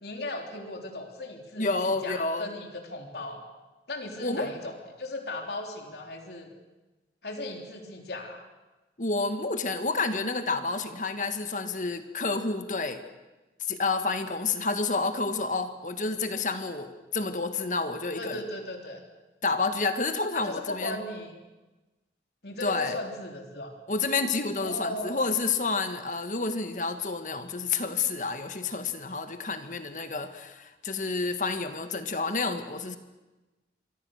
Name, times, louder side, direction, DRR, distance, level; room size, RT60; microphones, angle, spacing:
voice 1, 0.0-3.4 3.9-6.5 7.2-8.5 18.2-19.0 20.3-21.4 22.4-23.7 24.6-25.2, left 1 dB, 70° left, 3 dB, 3.5 m, -37 dB
voice 2, 1.6-2.5 4.2-4.5 9.0-13.0 13.6-18.4 19.4-21.0 22.6-23.0 23.9-33.0, left 3 dB, 45° left, 8 dB, 1.7 m, -29 dB
26.5 x 24.0 x 6.5 m, 1.1 s
head